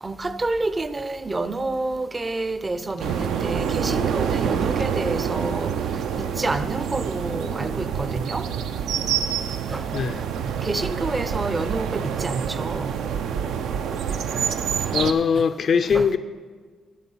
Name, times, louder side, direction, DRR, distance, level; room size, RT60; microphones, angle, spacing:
voice 1, 0.0-5.7 6.2-8.5 9.7-9.8 10.4-12.9 15.3-15.4 15.8-16.2, right 2 dB, 25° right, 0.5 m, -28 dB
sound 1, 3.0-15.1, right 7 dB, 80° right, 0.5 m, -27 dB
voice 2, 14.9-16.2, left 6 dB, 50° left, 0.3 m, -21 dB
12.5 x 4.6 x 5.5 m
cardioid pair, 90°, 0 cm